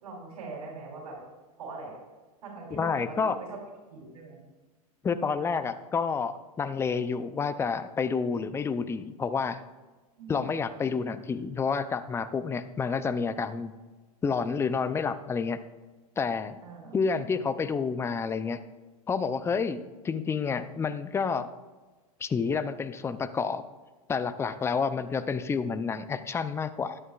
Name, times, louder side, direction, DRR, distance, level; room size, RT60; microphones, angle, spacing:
voice 1, 0.0-1.2 1.6-2.0 2.4-3.6 3.9-4.4 10.2-10.5 16.6-17.0 17.4-17.5, right 3 dB, 75° right, -4 dB, 3.4 m, -42 dB
voice 2, 2.7-3.4 5.0-9.6 10.3-13.7 14.2-15.6 16.2-16.6 16.9-18.6 19.1-21.5 22.2-23.6 24.1-27.0, left 5 dB, 15° left, 13 dB, 0.5 m, -29 dB
12.0 x 9.8 x 2.4 m, 1.3 s
hypercardioid pair, 115°, 19 cm